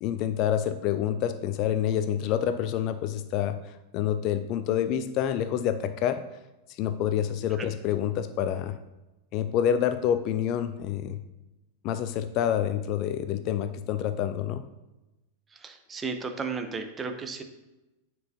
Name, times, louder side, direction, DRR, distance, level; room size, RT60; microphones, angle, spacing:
voice 1, 0.0-6.3 6.7-8.8 9.3-11.2 11.8-14.6, left 10 dB, 40° left, 11 dB, 0.3 m, -27 dB
voice 2, 15.5-17.4, right 4 dB, 15° right, 6 dB, 0.7 m, -34 dB
9.4 x 4.6 x 2.7 m, 1.0 s
figure-of-eight pair, 90°, 0 cm